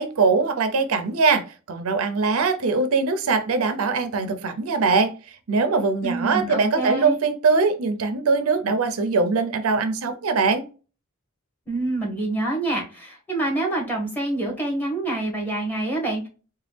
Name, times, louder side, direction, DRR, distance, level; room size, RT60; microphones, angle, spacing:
voice 1, 0.0-1.4 1.7-10.6, right 4 dB, 75° right, 9 dB, 0.5 m, -22 dB
voice 2, 6.0-7.2 11.7-16.3, right 2 dB, 10° left, -1 dB, 1.2 m, -26 dB
3.9 x 2.3 x 3.2 m, 0.34 s
head